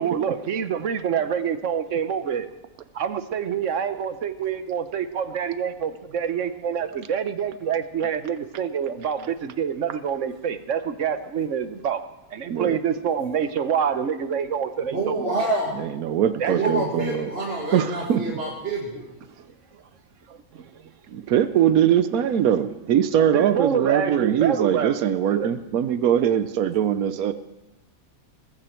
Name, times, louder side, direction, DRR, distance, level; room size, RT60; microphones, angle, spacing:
voice 1, 0.0-2.5 2.9-12.0 12.3-15.5 16.4-16.8 20.3-20.7 23.3-25.0 25.3-25.5, right 7 dB, 65° right, 11 dB, 1.2 m, -26 dB
voice 2, 14.9-15.7 16.5-19.1, right 2 dB, 45° right, -2 dB, 2.3 m, -27 dB
voice 3, 15.8-17.3 17.7-18.4 21.1-27.3, right 10 dB, 85° right, 12 dB, 1.2 m, -22 dB
19.5 x 15.5 x 4.5 m, 0.96 s
omnidirectional pair, 1.5 m